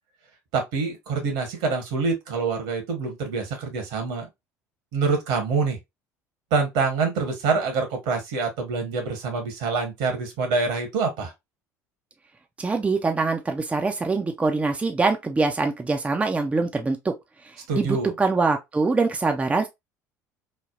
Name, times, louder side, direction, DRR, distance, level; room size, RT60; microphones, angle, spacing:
voice 1, 0.5-4.3 4.9-5.8 6.5-11.3 17.7-18.1, right 4 dB, 65° right, 1.1 m, -26 dB
voice 2, 12.6-17.1 17.7-19.7, right 3 dB, 15° right, 0.4 m, -24 dB
3.3 x 2.0 x 2.4 m
figure-of-eight pair, 65°, 9 cm